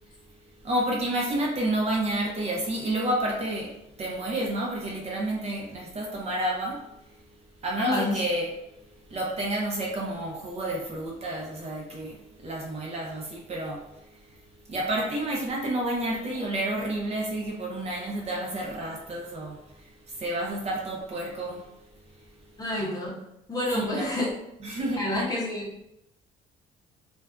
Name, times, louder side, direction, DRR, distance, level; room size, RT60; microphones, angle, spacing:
voice 1, 0.6-3.7 4.0-6.8 7.6-8.5 9.1-12.2 12.4-13.8 14.7-19.6 20.1-21.6 23.7-24.2 24.6-25.0, right 1 dB, 40° right, -2 dB, 0.6 m, -30 dB
voice 2, 7.8-8.2 22.6-23.2 23.5-24.3 25.0-25.7, left 1 dB, 20° left, -4 dB, 0.7 m, -28 dB
2.5 x 2.2 x 2.3 m, 0.84 s
cardioid pair, 110°, 17 cm